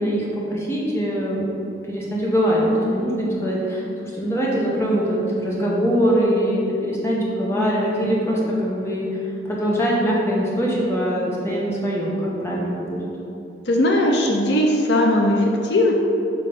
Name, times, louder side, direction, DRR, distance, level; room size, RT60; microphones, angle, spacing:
voice 1, 0.0-9.1 9.4-13.1, equal, 15° left, -5 dB, 1.1 m, -22 dB
voice 2, 13.6-15.9, left 1 dB, 70° left, 0 dB, 0.6 m, -18 dB
6.9 x 3.1 x 5.4 m, 2.8 s
head